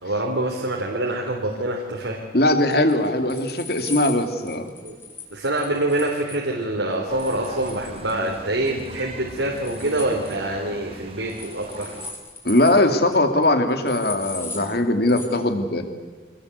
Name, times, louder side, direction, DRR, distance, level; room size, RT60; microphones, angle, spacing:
voice 1, 0.0-2.2 4.8-5.0 5.3-12.0, right 1 dB, 85° right, -1 dB, 3.7 m, -25 dB
voice 2, 2.3-4.7 12.4-15.8, left 1 dB, 55° left, 7 dB, 2.5 m, -20 dB
sound 1, 2.7-6.4 7.2-8.4 8.6-9.0 9.3-10.4 11.3-12.8 13.1-13.2 13.4-13.5 13.9-14.7 15.1-15.3, left 3 dB, 15° left, 4.0 m, -38 dB
sound 2, 7.1-12.1, right 1 dB, 30° right, 2.6 m, -40 dB
26.5 x 19.5 x 8.2 m, 1.5 s
head